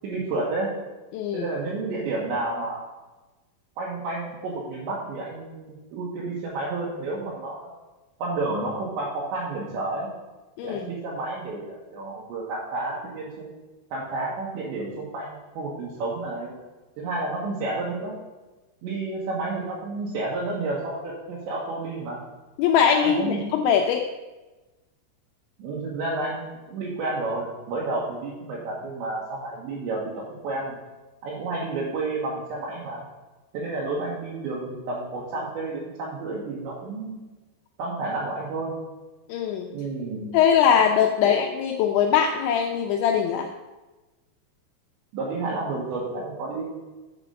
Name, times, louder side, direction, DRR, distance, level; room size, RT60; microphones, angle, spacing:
voice 1, 0.0-0.7 1.3-2.8 3.8-7.6 8.2-10.1 10.6-13.5 13.9-16.5 17.0-18.2 18.8-22.2 23.0-23.5 25.6-30.8 31.2-33.0 33.5-37.2 37.8-38.7 39.7-40.3 41.2-41.4 45.1-46.6, right 2 dB, 75° right, -6 dB, 3.5 m, -30 dB
voice 2, 1.1-1.5 10.6-10.8 22.6-24.0 39.3-39.7 40.3-43.5, left 8 dB, 80° left, 3 dB, 2.7 m, -21 dB
7.7 x 5.9 x 6.9 m, 1.2 s
omnidirectional pair, 5.6 m